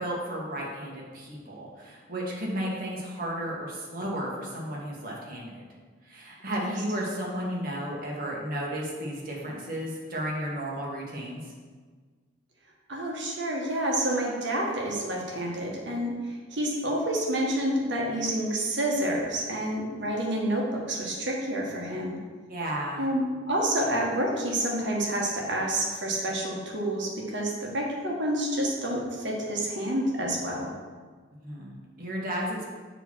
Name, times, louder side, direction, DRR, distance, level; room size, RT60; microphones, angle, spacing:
voice 1, 0.0-5.6 6.0-11.4 22.5-23.1 31.4-32.7, equal, 50° right, -3 dB, 1.4 m, -33 dB
voice 2, 12.9-22.2 23.0-30.7, right 1 dB, 70° right, -1 dB, 1.3 m, -29 dB
6.8 x 3.1 x 6.0 m, 1.5 s
head